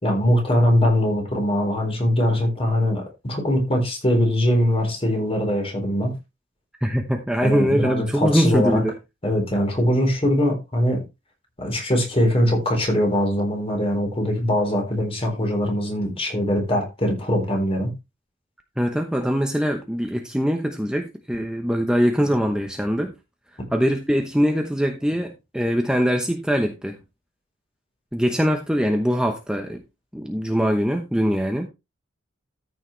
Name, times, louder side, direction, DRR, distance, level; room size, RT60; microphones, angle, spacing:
voice 1, 0.0-6.1 7.4-8.8 9.2-11.0 11.6-17.9, equal, 30° left, 3.9 m, -22 dB
voice 2, 6.8-9.0 18.8-23.1 23.7-27.0 28.1-29.8 30.1-31.7, equal, 5° right, 0.9 m, -22 dB
13.5 x 6.4 x 3.2 m
head